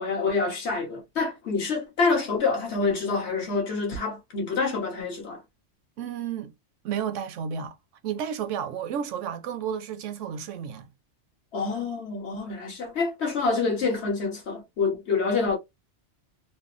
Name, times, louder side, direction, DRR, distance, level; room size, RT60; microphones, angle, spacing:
voice 1, 0.0-5.4 11.5-15.6, left 4 dB, 65° left, 1.4 m, -27 dB
voice 2, 6.0-6.5 6.8-7.8 8.0-10.9, right 8 dB, 85° right, 0.9 m, -32 dB
3.4 x 2.0 x 2.4 m
omnidirectional pair, 1.2 m